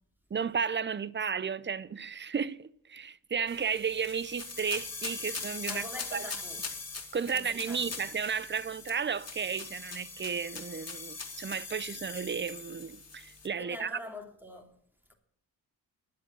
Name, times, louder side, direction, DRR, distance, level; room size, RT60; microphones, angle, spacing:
voice 1, 0.3-5.8 6.1-6.3 7.1-14.0, right 6 dB, 25° right, 0.6 m, -33 dB
sound 1, 3.5-13.5, left 4 dB, 40° left, 2.6 m, -41 dB
voice 2, 5.7-6.6 7.3-8.0 13.6-14.8 15.1-15.2, left 1 dB, 5° right, 2.9 m, -44 dB
11.5 x 7.9 x 7.6 m
cardioid pair, 60°, 41 cm